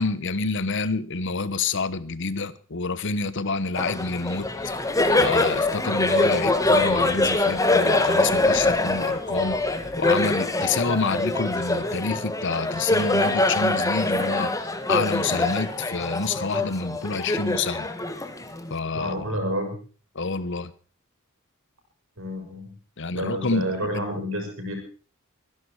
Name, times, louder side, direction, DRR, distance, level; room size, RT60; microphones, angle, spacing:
voice 1, 0.0-4.5 5.2-9.6 10.0-14.5 14.9-17.9 18.7-19.4 20.1-20.7 23.0-23.9, left 4 dB, 60° left, 1.1 m, -28 dB
Laughter, 3.8-18.8, left 2 dB, 15° left, 1.6 m, -24 dB
voice 2, 18.9-19.8 22.2-22.7 23.1-24.7, equal, 65° right, 5.8 m, -29 dB
23.5 x 11.0 x 4.8 m
head